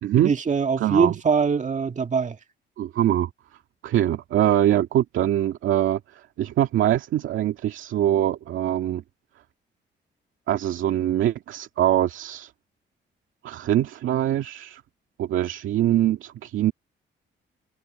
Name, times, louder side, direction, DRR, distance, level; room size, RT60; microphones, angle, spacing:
voice 1, 0.2-2.4, right 5 dB, 40° right, 2.0 m, -22 dB
voice 2, 0.8-1.1 2.8-3.3 3.8-9.0 10.5-12.5 13.4-14.8 15.2-16.7, right 12 dB, 80° right, 2.2 m, -23 dB
cardioid pair, 90°, 20 cm